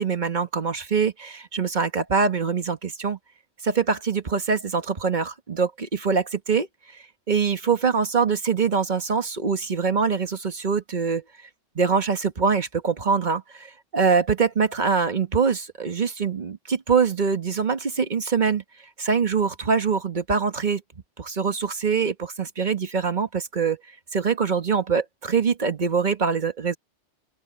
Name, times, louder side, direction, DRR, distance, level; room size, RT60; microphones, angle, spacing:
voice 1, 0.0-3.2 3.6-6.7 7.3-11.2 11.7-18.6 19.0-20.8 21.2-23.8 24.1-26.8, right 5 dB, 45° right, 1.4 m, -24 dB
open air
omnidirectional pair, 1.1 m